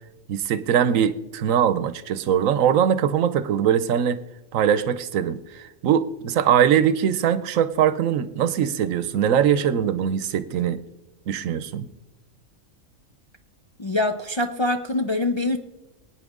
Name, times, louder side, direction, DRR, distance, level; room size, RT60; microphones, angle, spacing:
voice 1, 0.3-4.2 4.5-10.8 11.3-11.9, right 9 dB, 90° right, 14 dB, 1.1 m, -21 dB
voice 2, 13.8-15.6, left 2 dB, 35° left, 5 dB, 0.4 m, -24 dB
24.0 x 9.0 x 3.7 m, 1.0 s
omnidirectional pair, 1.3 m